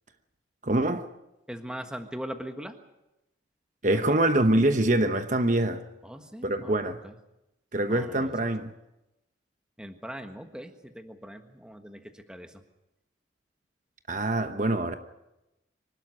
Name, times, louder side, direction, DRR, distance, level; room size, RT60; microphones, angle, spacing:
voice 1, 0.6-1.1 3.8-5.8 6.4-7.0 7.7-8.7 14.1-14.9, right 1 dB, 40° right, 1.0 m, -24 dB
voice 2, 1.5-2.8 3.9-4.1 6.0-6.7 7.0-7.1 7.9-8.3 9.8-12.6, equal, 5° right, 1.4 m, -40 dB
25.0 x 12.5 x 9.7 m
head